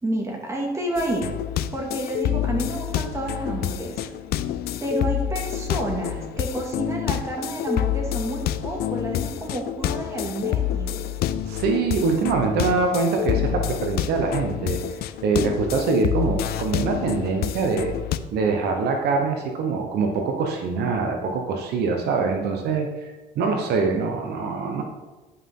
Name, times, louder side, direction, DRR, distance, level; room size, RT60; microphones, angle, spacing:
voice 1, 0.0-1.3 1.7-4.0 4.8-11.0, right 1 dB, 15° right, -1 dB, 2.2 m, -29 dB
sound 1, 1.0-18.2, left 11 dB, 70° left, 0.5 m, -28 dB
voice 2, 11.5-14.8 15.2-17.9 18.3-23.1 23.4-24.8, right 4 dB, 75° right, 3 dB, 1.1 m, -24 dB
11.0 x 5.7 x 3.8 m, 1.2 s
cardioid pair, 110°, 17 cm